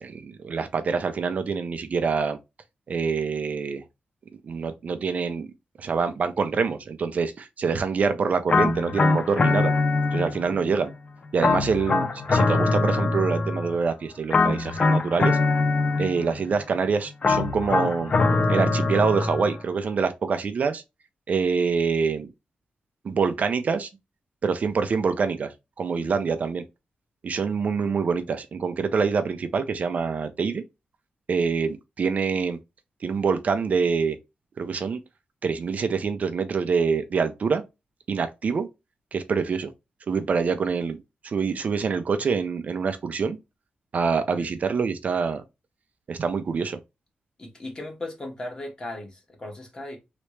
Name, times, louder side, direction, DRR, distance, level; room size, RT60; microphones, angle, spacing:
voice 1, 0.0-2.4 2.9-3.8 4.4-5.5 5.8-9.7 10.1-10.9 11.3-15.4 16.0-18.1 18.5-20.8 21.3-22.3 23.0-23.9 24.4-25.5 25.8-26.6 27.2-30.6 31.3-32.6 33.0-34.2 34.6-35.0 35.4-37.6 38.1-38.7 39.1-39.7 40.1-43.4 43.9-45.4 46.1-46.8, right 5 dB, 55° right, 0.5 m, -25 dB
sound 1, 8.5-10.6 11.4-13.8 14.3-16.4 17.2-19.6, left 3 dB, 45° left, 0.4 m, -23 dB
voice 2, 10.3-10.6 44.4-44.5 47.4-50.0, left 1 dB, 25° left, 1.5 m, -37 dB
3.2 x 3.0 x 3.1 m
wide cardioid pair, 130°, 3 cm